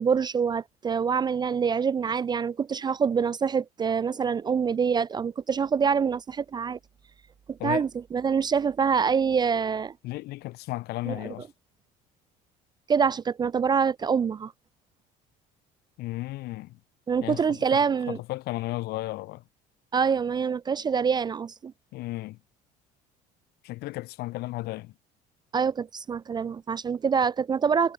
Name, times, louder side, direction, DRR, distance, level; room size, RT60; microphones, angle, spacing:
voice 1, 0.0-6.8 7.5-9.9 11.1-11.2 12.9-14.5 17.1-18.2 19.9-21.7 25.5-27.9, right 6 dB, 25° right, 0.4 m, -25 dB
voice 2, 10.0-11.5 16.0-16.8 17.2-19.4 21.9-22.4 23.6-24.9, left 18 dB, 75° left, 1.7 m, -34 dB
supercardioid pair, 95°, 17 cm